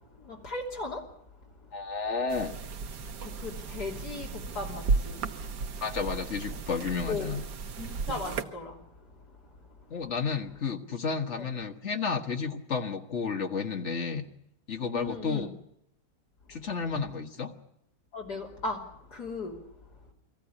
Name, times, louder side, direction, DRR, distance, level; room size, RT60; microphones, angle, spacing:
voice 1, 0.3-1.0 3.2-4.3 4.6-5.2 7.1-7.3 7.8-8.7 14.9-15.5 18.1-18.8 19.2-19.5, left 3 dB, 65° left, 3.8 m, -36 dB
voice 2, 1.7-2.5 5.8-7.4 9.9-14.3 14.7-15.5 16.5-17.5, left 5 dB, 45° left, 1.8 m, -32 dB
sound 1, 2.3-8.4, right 4 dB, 70° right, 1.7 m, -34 dB
21.5 x 15.0 x 9.9 m
omnidirectional pair, 1.9 m